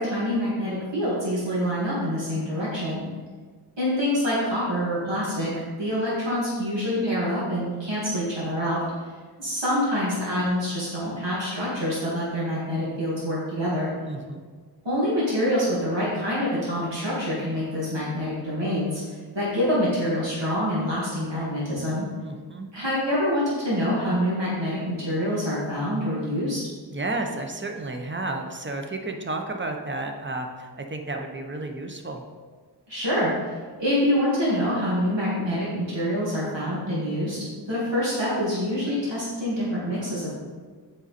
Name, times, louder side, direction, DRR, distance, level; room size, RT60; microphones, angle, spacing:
voice 1, 0.0-3.1 3.8-5.5 5.8-9.1 9.4-13.9 14.8-19.0 19.3-22.1 22.7-26.6 32.9-40.3, equal, 85° right, -9 dB, 2.3 m, -26 dB
voice 2, 14.0-14.4 22.2-22.7 26.9-32.2, right 2 dB, 25° right, 3 dB, 0.9 m, -32 dB
7.8 x 5.2 x 4.3 m, 1.5 s
wide cardioid pair, 45°, 42 cm